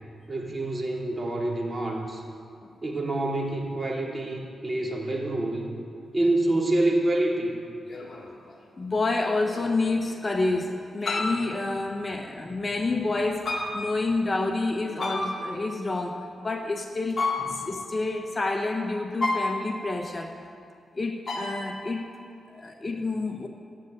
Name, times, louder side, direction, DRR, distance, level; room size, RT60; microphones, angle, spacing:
voice 1, 0.3-2.2 2.8-5.7 6.1-7.5 17.4-17.5, right 1 dB, 30° right, -2 dB, 3.1 m, -27 dB
sound 1, 6.2-6.3 7.9-8.6 9.5-10.2 11.0-11.5 13.5-14.0 15.0-15.7 17.1-17.8 19.2-19.9 21.3-21.9, left 2 dB, 50° left, 2.6 m, -31 dB
voice 2, 8.8-17.3 17.5-20.4 20.9-22.1 22.5-23.5, left 3 dB, 30° left, 4 dB, 1.2 m, -28 dB
14.5 x 9.2 x 9.4 m, 2.4 s
cardioid pair, 75°, 0 cm